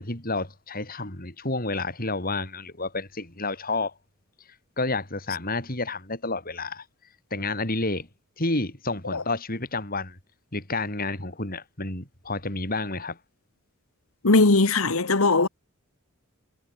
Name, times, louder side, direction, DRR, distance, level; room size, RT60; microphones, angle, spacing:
voice 1, 0.0-3.9 4.8-6.8 7.3-8.1 8.4-10.2 10.5-13.2, left 2 dB, 45° left, 7.2 m, -30 dB
voice 2, 14.2-15.5, left 3 dB, 75° left, 1.5 m, -19 dB
head